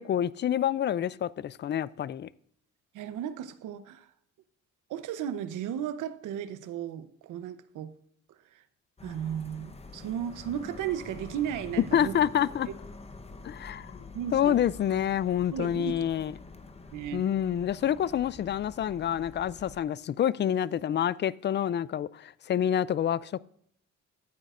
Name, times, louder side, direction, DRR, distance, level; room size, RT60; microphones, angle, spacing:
voice 1, 0.0-2.3 11.9-12.7 13.4-14.0 14.3-16.3 17.1-23.4, left 10 dB, 40° left, 0.4 m, -28 dB
voice 2, 2.9-4.1 4.9-7.9 8.5-8.6 9.0-12.1 14.1-14.6 15.5-16.1 16.9-17.3, right 9 dB, 85° right, 0.9 m, -35 dB
sound 1, 9.0-19.8, left 3 dB, 20° left, 0.9 m, -47 dB
14.0 x 9.0 x 2.5 m
cardioid pair, 90°, 30 cm